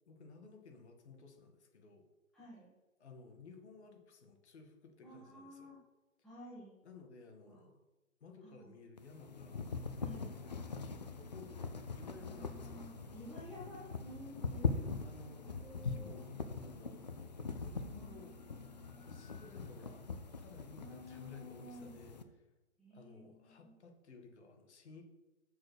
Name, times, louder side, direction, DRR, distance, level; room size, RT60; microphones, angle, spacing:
voice 1, 0.1-2.0 3.0-5.7 6.8-7.8 8.2-9.7 10.0-10.4 10.8-12.8 14.6-17.0 17.6-18.4 19.0-20.1 20.4-22.5 22.9-25.0, left 4 dB, 50° left, 3 dB, 2.0 m, -56 dB
voice 2, 2.3-2.7 5.0-5.8 6.2-6.8 7.5-7.7 8.4-8.8 10.0-10.4 12.2-14.8 15.3-16.3 17.9-19.2 20.8-22.0 22.8-23.7, equal, ahead, -9 dB, 0.7 m, -53 dB
sound 1, 9.0-22.2, left 4 dB, 35° left, 0.5 m, -42 dB
6.8 x 6.6 x 6.3 m, 1.0 s
hypercardioid pair, 160°, 42 cm